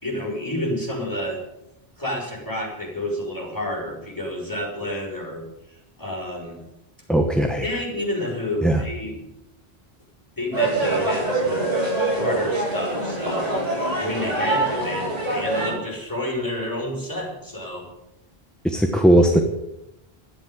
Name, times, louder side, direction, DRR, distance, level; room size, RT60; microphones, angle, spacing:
voice 1, 0.0-1.4 2.0-5.4 6.0-6.6 7.6-9.2 10.4-11.7 12.1-13.5 14.0-17.9, left 1 dB, 20° left, -3 dB, 5.9 m, -29 dB
voice 2, 7.1-7.7 8.6-8.8 18.6-19.4, right 1 dB, ahead, 3 dB, 1.2 m, -18 dB
sound 1, 10.5-15.7, right 2 dB, 75° right, 8.5 m, -24 dB
12.0 x 10.5 x 9.1 m, 0.89 s
omnidirectional pair, 1.1 m